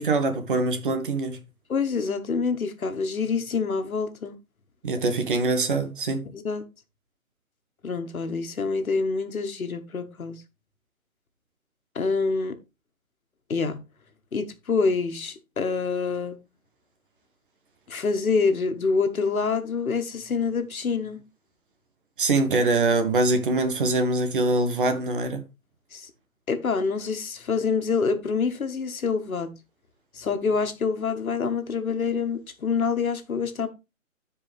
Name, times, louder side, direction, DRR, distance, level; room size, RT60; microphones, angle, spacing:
voice 1, 0.0-1.4 4.8-6.3 22.2-25.5, right 3 dB, 40° right, 1.3 m, -23 dB
voice 2, 1.7-4.3 6.3-6.6 7.8-10.4 11.9-12.5 13.5-13.8 14.3-16.3 17.9-21.2 25.9-26.0 26.5-29.5 30.2-33.7, left 5 dB, 85° left, 1.6 m, -26 dB
13.0 x 4.8 x 3.4 m
hypercardioid pair, 165°, 41 cm